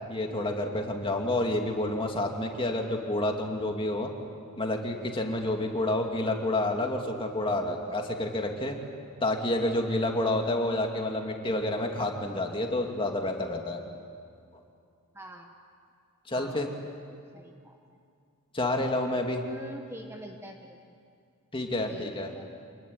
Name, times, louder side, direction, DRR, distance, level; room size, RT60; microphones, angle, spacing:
voice 1, 0.1-4.1 4.6-8.8 9.2-13.8 16.3-16.7 18.5-19.4 21.5-22.3, left 1 dB, 25° left, 2 dB, 2.5 m, -29 dB
voice 2, 11.4-11.7 15.1-15.5 16.3-16.7 17.3-17.8 19.4-20.8 21.8-22.5, equal, 10° right, 3 dB, 1.3 m, -45 dB
27.0 x 21.0 x 9.6 m, 2.3 s
head